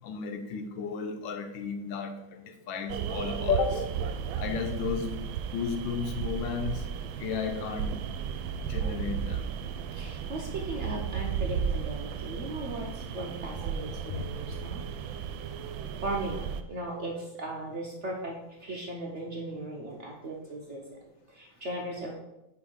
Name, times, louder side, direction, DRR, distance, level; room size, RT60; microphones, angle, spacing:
voice 1, 0.0-3.9 4.4-5.2 5.5-6.8 7.2-8.0 8.7-9.5 14.1-14.2, left 6 dB, 75° left, 7 dB, 1.5 m, -33 dB
sound 1, 2.9-16.6, right 7 dB, 85° right, 1.3 m, -34 dB
voice 2, 9.9-14.8 16.0-16.4 16.7-18.3 18.6-21.0 21.3-22.2, right 1 dB, 55° right, -1 dB, 0.8 m, -37 dB
4.9 x 4.9 x 5.5 m, 0.96 s
omnidirectional pair, 2.1 m